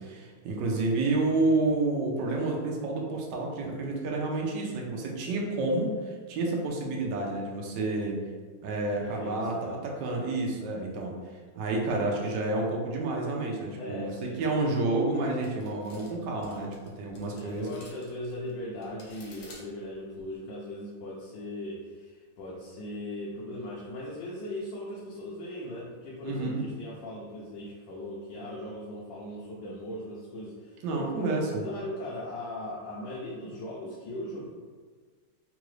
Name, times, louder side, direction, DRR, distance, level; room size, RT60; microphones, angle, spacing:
voice 1, 0.0-8.2 8.6-11.2 11.5-17.7 26.2-26.6 30.8-31.6, right 2 dB, 75° right, -1 dB, 1.2 m, -29 dB
voice 2, 8.9-9.8 13.7-14.4 17.3-34.5, left 1 dB, 80° left, -5 dB, 1.3 m, -39 dB
sound 1, 15.4-20.4, left 2 dB, 60° left, 1.1 m, -53 dB
3.8 x 2.4 x 3.1 m, 1.5 s
omnidirectional pair, 2.0 m